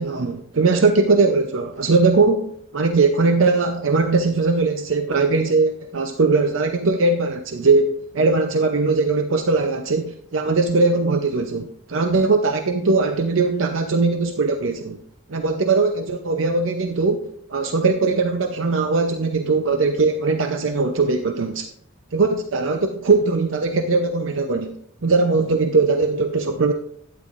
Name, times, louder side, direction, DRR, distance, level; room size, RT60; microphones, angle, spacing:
voice 1, 0.0-15.0 15.3-21.7 22.1-24.7 25.0-26.7, right 3 dB, 75° right, 6 dB, 0.6 m, -20 dB
12.0 x 9.3 x 2.5 m, 0.69 s
head